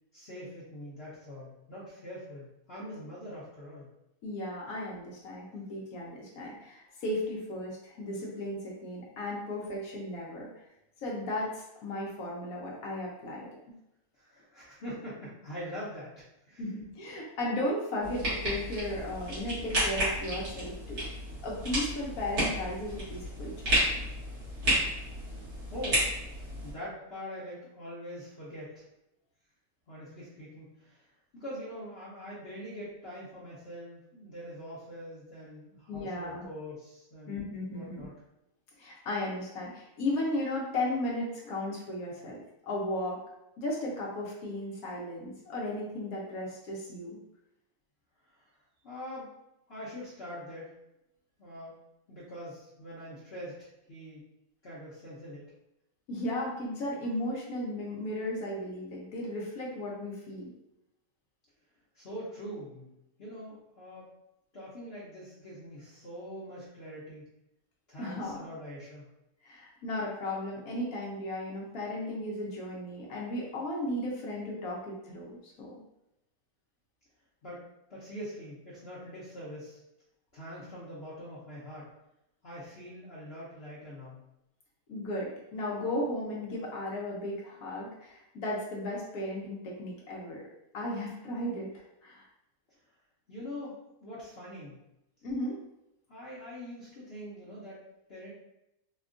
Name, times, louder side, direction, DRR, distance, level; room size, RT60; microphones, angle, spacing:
voice 1, 0.1-3.9 14.1-16.1 16.5-16.6 25.7-26.2 26.6-28.8 29.9-31.1 31.3-37.4 37.7-38.1 48.3-48.5 48.8-49.3 49.7-50.7 51.4-51.8 52.1-54.3 54.6-55.5 61.9-62.9 63.2-64.1 64.5-67.3 67.9-69.1 77.4-77.6 77.9-79.8 80.3-81.9 82.4-84.2 92.7-92.8 93.3-94.8 96.1-98.3, equal, 50° left, -9 dB, 0.9 m, -43 dB
voice 2, 4.2-10.5 11.0-13.5 16.6-21.0 21.4-23.9 35.9-36.4 37.3-38.1 38.8-43.2 43.6-47.2 56.1-60.5 68.0-68.5 69.4-75.8 84.9-90.5 90.7-91.7 92.0-92.2 95.2-95.6, left 1 dB, 75° left, -3 dB, 1.2 m, -35 dB
sound 1, 18.0-26.7, equal, 75° right, 2.1 m, -32 dB
4.3 x 2.2 x 2.5 m, 0.86 s
omnidirectional pair, 1.6 m